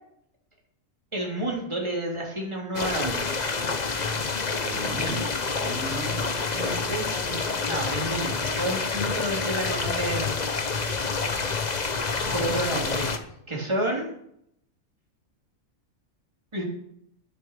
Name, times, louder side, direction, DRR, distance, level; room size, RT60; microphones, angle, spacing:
voice 1, 1.1-3.3 7.7-10.3 12.3-13.2 13.5-14.1 16.5-16.6, right 1 dB, 20° right, -2 dB, 3.4 m, -30 dB
sound 1, 2.7-13.2, left 4 dB, 35° left, 1.0 m, -28 dB
voice 2, 4.6-6.3 6.5-7.6 12.2-12.9, right 2 dB, 70° right, 0 dB, 2.7 m, -37 dB
12.0 x 7.8 x 6.8 m, 0.72 s
omnidirectional pair, 1.4 m